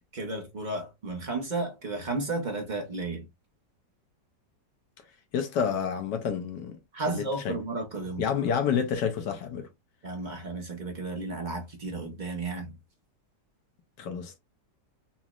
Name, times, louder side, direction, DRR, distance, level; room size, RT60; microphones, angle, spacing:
voice 1, 0.1-3.3 6.9-8.2 10.0-12.8, right 3 dB, 55° right, 0.5 m, -33 dB
voice 2, 5.3-6.8 7.1-7.6 8.2-9.7 14.0-14.4, left 7 dB, 80° left, 1.4 m, -29 dB
4.0 x 3.0 x 2.4 m
omnidirectional pair, 1.9 m